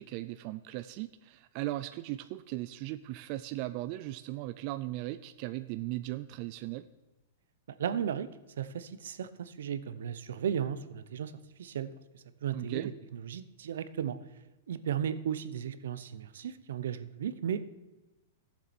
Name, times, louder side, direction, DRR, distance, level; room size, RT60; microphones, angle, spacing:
voice 1, 0.0-6.9 12.5-12.9, right 16 dB, 35° right, 12 dB, 0.3 m, -38 dB
voice 2, 7.8-8.3 8.6-11.3 11.6-14.2 14.7-17.8, right 8 dB, 80° right, 13 dB, 0.8 m, -35 dB
16.5 x 7.3 x 4.4 m, 1.1 s
supercardioid pair, 170°, 0 cm